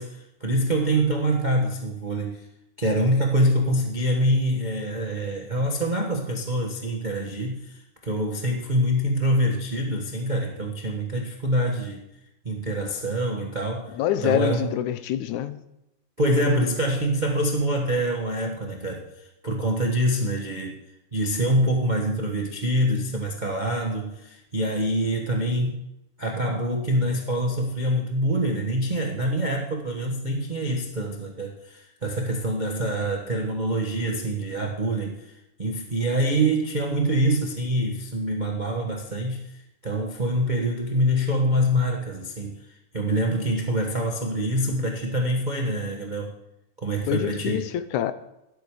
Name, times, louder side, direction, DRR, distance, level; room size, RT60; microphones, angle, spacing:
voice 1, 0.0-2.4 2.8-12.0 12.4-14.0 14.2-14.7 16.2-20.8 21.1-25.8 26.2-39.6 39.8-42.6 42.9-46.3 46.8-47.7, right 1 dB, 65° right, 1 dB, 0.4 m, -25 dB
voice 2, 14.0-15.6 47.1-48.1, left 11 dB, 80° left, 12 dB, 2.1 m, -26 dB
13.5 x 11.5 x 4.9 m, 0.89 s
omnidirectional pair, 3.5 m